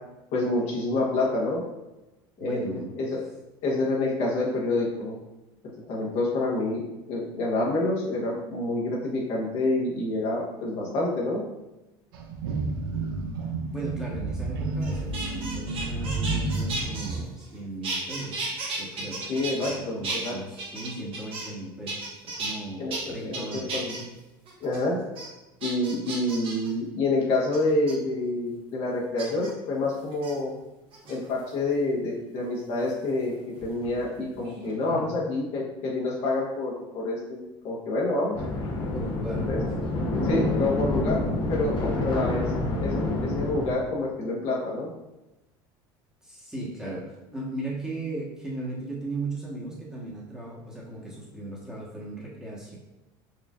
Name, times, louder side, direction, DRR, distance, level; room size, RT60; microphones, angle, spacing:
voice 1, 0.3-1.6 2.4-3.2 3.6-5.2 5.9-11.4 19.2-20.3 22.8-24.0 24.6-25.0 25.6-30.5 31.1-33.3 33.6-38.4 39.5-39.6 40.3-41.2 41.5-42.5 42.8-44.9, left 2 dB, 60° left, -3 dB, 1.0 m, -28 dB
voice 2, 2.4-2.9 13.7-19.2 19.6-23.8 34.9-35.1 38.9-39.5 46.2-52.8, right 2 dB, 5° right, -5 dB, 1.1 m, -37 dB
sound 1, 12.1-17.2, right 3 dB, 90° right, 0.4 m, -30 dB
sound 2, 14.8-17.6 17.8-19.8 20.0-21.6 21.9-22.5 22.9-23.0 23.3-24.0 24.5-24.8 25.2-25.3 25.6-26.7 27.5-27.9 29.2-29.5 30.1-30.3 30.9-31.5 32.9-34.1 34.4-34.7, right 3 dB, 50° right, 1.2 m, -35 dB
sound 3, 38.3-43.7, left 2 dB, 45° left, 0.7 m, -27 dB
4.5 x 2.4 x 2.4 m, 0.99 s
supercardioid pair, 90°, 12 cm